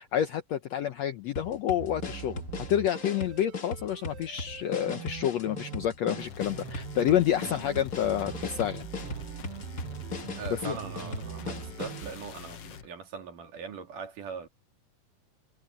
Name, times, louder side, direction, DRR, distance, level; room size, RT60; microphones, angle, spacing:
voice 1, 0.0-2.4 2.7-8.9 10.3-10.8, left 10 dB, 70° left, 1.6 m, -29 dB
sound 1, 1.4-12.1, left 4 dB, 35° left, 1.6 m, -39 dB
sound 2, 1.8-12.1, right 14 dB, 85° right, 2.6 m, -43 dB
sound 3, 6.2-12.9, left 7 dB, 55° left, 2.1 m, -45 dB
voice 2, 10.4-14.5, right 6 dB, 70° right, 4.1 m, -41 dB
omnidirectional pair, 4.0 m